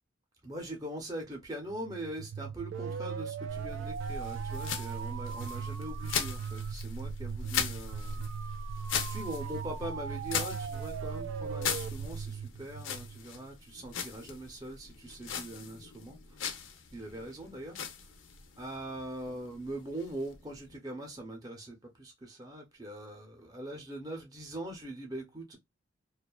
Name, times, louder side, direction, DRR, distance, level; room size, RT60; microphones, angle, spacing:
voice 1, 0.4-8.5 9.1-16.6 16.9-17.8 18.6-25.6, right 1 dB, 20° right, 0.6 m, -42 dB
sound 1, 1.7-13.5, right 7 dB, 85° right, 0.3 m, -39 dB
sound 2, 3.5-20.8, left 6 dB, 70° left, 0.5 m, -39 dB
2.5 x 2.2 x 2.2 m
head